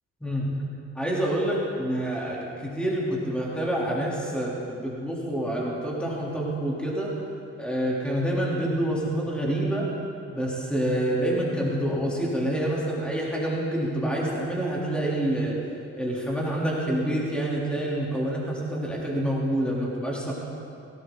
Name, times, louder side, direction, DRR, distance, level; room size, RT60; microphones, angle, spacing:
voice 1, 0.2-0.6 1.0-7.1 7.6-9.9 10.3-15.6 16.0-20.3, right 1 dB, 5° left, -5 dB, 3.5 m, -27 dB
17.5 x 17.5 x 4.0 m, 2.6 s
cardioid pair, 90°, 30 cm